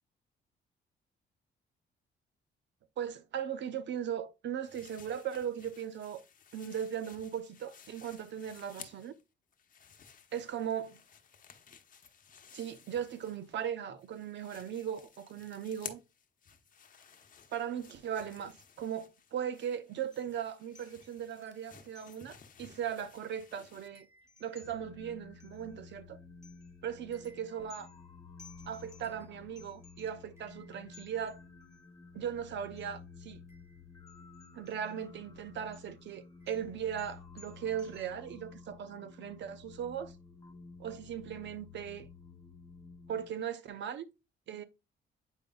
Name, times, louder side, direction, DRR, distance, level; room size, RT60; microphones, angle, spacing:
voice 1, 3.0-6.2 6.5-9.1 10.3-11.0 12.5-16.0 17.5-24.1 24.4-26.2 26.8-27.9 28.7-31.4 32.1-33.4 34.5-40.1 40.8-42.1 43.1-44.1 44.5-44.6, right 9 dB, 65° right, 0.8 m, -38 dB
sound 1, 4.6-9.2 9.5-13.7 14.0-23.9, left 7 dB, 45° left, 1.0 m, -55 dB
sound 2, 18.9-19.1 19.4-19.5 20.1-20.5 20.8-22.5 22.9-23.0 23.2-26.0 26.4-31.8 32.8-33.0 33.5-35.1 35.6-38.1, left 4 dB, 15° right, 2.6 m, -61 dB
sound 3, 24.6-43.3, left 4 dB, 20° left, 1.5 m, -53 dB
8.2 x 5.0 x 2.3 m
cardioid pair, 90°, 20 cm